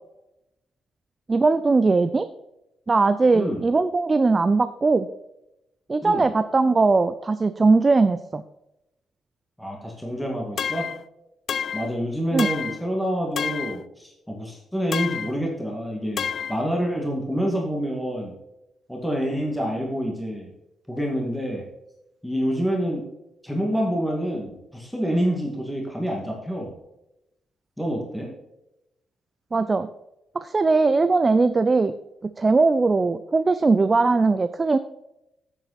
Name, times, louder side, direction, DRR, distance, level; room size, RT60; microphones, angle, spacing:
voice 1, 1.3-2.3 2.9-5.1 5.9-8.4 12.3-12.5 29.5-29.9 30.3-32.0 32.4-34.8, right 3 dB, 25° right, 11 dB, 0.5 m, -20 dB
voice 2, 9.6-10.9 11.7-18.3 18.9-20.5 20.9-21.6 22.2-23.1 23.4-26.7 27.8-28.3, equal, ahead, -1 dB, 2.1 m, -27 dB
sound 1, 10.6-11.0 11.5-11.9 12.4-12.8 13.4-13.8 14.9-15.4 16.2-16.6, left 7 dB, 55° left, 0.3 m, -29 dB
9.1 x 8.2 x 4.2 m, 0.88 s
cardioid pair, 120°, 0 cm